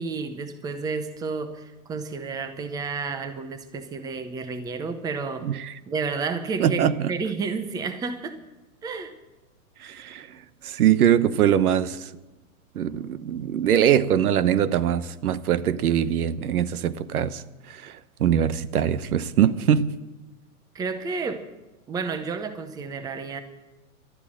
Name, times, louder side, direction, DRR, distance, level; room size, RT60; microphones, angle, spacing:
voice 1, 0.0-5.5 5.9-6.8 7.1-8.4 8.8-9.1 20.7-21.4 21.9-23.4, right 4 dB, 10° right, 0.7 m, -31 dB
voice 2, 5.4-5.7 6.6-7.1 9.8-10.4 10.6-12.1 12.7-19.9, right 9 dB, 85° right, 1.0 m, -22 dB
12.5 x 12.0 x 7.7 m
hypercardioid pair, 145°, 43 cm